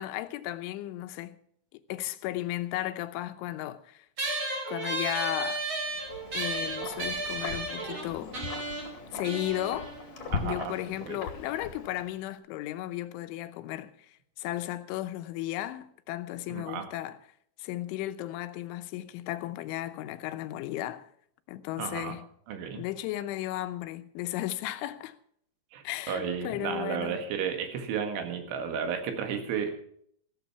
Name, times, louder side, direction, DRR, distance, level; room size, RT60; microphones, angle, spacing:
voice 1, 0.0-1.4 1.7-4.1 4.7-5.7 6.3-8.4 9.1-9.9 10.4-17.2 17.6-21.1 21.5-22.3 22.8-25.2 25.8-27.2, left 14 dB, 90° left, 3.3 m, -35 dB
sound 1, 4.2-11.0, right 2 dB, 30° right, 2.8 m, -34 dB
Wind, 5.8-12.3, left 5 dB, 45° left, 2.6 m, -40 dB
voice 2, 10.3-10.7 11.0-11.2 16.5-16.9 21.8-22.2 22.5-22.8 25.7-29.7, right 7 dB, 85° right, 4.2 m, -33 dB
15.0 x 13.0 x 4.7 m
omnidirectional pair, 5.4 m